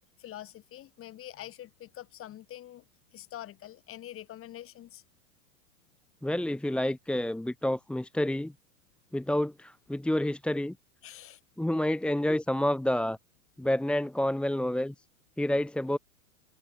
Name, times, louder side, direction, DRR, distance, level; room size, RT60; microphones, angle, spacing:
voice 1, 0.2-2.8 3.1-5.0 11.0-11.4, left 13 dB, 30° left, 7.8 m, -45 dB
voice 2, 6.2-8.5 9.1-10.8 11.6-13.2 13.6-14.9 15.4-16.0, left 1 dB, ahead, 1.9 m, -29 dB
hypercardioid pair, 115°, 42 cm